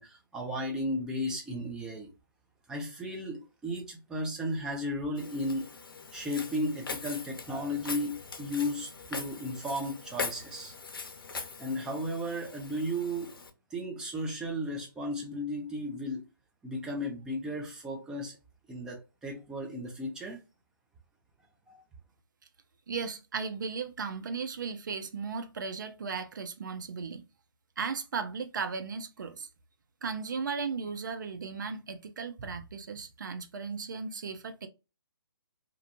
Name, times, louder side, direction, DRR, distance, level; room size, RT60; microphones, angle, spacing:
voice 1, 0.0-2.1 2.7-5.7 6.1-10.7 11.6-13.3 13.7-16.2 16.6-18.4 18.7-20.4 21.7-21.8, equal, 5° right, 0.5 m, -34 dB
Walk footsteps, 5.2-13.5, left 4 dB, 70° left, 0.6 m, -41 dB
voice 2, 22.9-27.3 27.8-29.5 30.0-34.7, right 5 dB, 55° right, 0.5 m, -36 dB
2.4 x 2.2 x 2.7 m
figure-of-eight pair, 145°, 12 cm